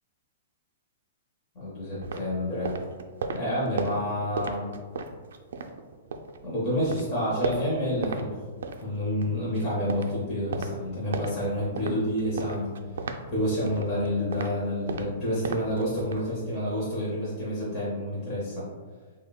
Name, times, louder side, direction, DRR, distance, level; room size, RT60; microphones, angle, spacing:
voice 1, 1.6-2.8 3.3-4.7 6.4-8.4 8.8-12.7 13.3-18.7, equal, 20° left, -8 dB, 0.6 m, -29 dB
sound 1, 2.0-6.4 6.7-8.2 8.5-16.3, right 4 dB, 75° right, 0.3 m, -37 dB
5.6 x 2.1 x 2.2 m, 1.5 s
hypercardioid pair, 180°, 0 cm